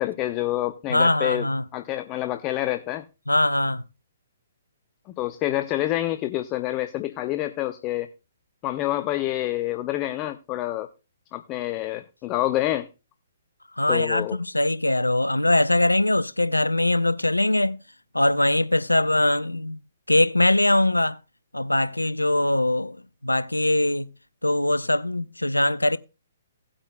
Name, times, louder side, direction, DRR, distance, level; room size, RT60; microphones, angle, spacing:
voice 1, 0.0-1.5 1.7-3.0 5.2-8.1 8.6-10.9 11.3-12.9 13.9-14.4, left 15 dB, 25° left, 0.6 m, -27 dB
voice 2, 0.9-1.6 3.3-3.8 13.8-17.8 18.1-19.8 20.1-21.2 21.5-23.0 23.2-24.1 24.4-26.0, left 1 dB, 90° left, 0.5 m, -22 dB
17.5 x 8.9 x 2.2 m
figure-of-eight pair, 125°, 0 cm